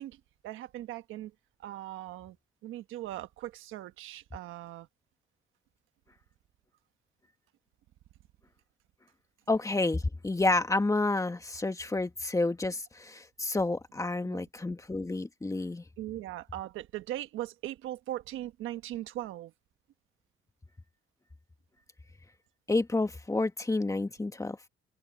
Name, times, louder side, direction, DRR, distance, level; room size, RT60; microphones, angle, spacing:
voice 1, 0.0-1.3 1.6-2.4 2.6-4.9 14.2-14.4 16.0-19.5, right 14 dB, 90° right, 1.2 m, -39 dB
voice 2, 9.5-15.8 22.7-24.6, left 2 dB, 15° left, 1.9 m, -29 dB
cardioid pair, 90°, 20 cm